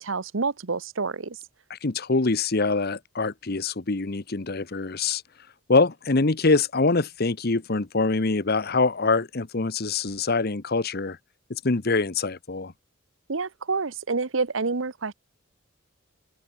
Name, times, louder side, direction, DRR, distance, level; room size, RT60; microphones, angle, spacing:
voice 1, 0.0-1.4 13.3-15.1, right 4 dB, 70° right, 1.0 m, -28 dB
voice 2, 1.7-5.2 5.7-11.2 11.5-12.7, left 3 dB, 50° left, 1.0 m, -24 dB
open air
head